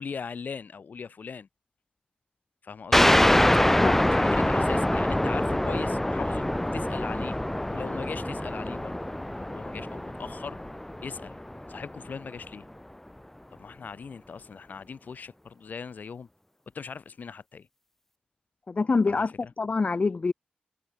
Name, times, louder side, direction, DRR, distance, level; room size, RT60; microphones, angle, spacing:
voice 1, 0.0-1.5 2.6-3.1 3.7-7.4 7.7-9.0 9.3-10.6 11.0-11.4 11.7-12.7 13.5-16.3 16.7-17.7 19.1-19.5, left 5 dB, 80° left, 2.3 m, -39 dB
sound 1, 2.9-12.1, left 1 dB, 10° left, 0.9 m, -25 dB
voice 2, 18.7-19.3 19.6-20.3, left 4 dB, 45° left, 1.1 m, -25 dB
wide cardioid pair, 115°, 3 cm